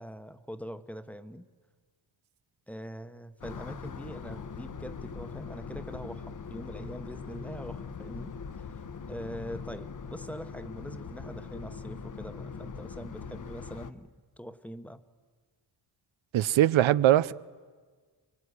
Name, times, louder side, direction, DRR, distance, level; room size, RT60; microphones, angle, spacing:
voice 1, 0.0-1.4 2.7-8.8 9.1-14.1 14.4-15.0, equal, 5° left, 1.0 m, -43 dB
sound 1, 3.4-13.9, left 5 dB, 40° left, 1.0 m, -41 dB
voice 2, 16.3-17.3, right 13 dB, 90° right, 0.7 m, -21 dB
25.0 x 24.0 x 9.7 m
wide cardioid pair, 130°, 46 cm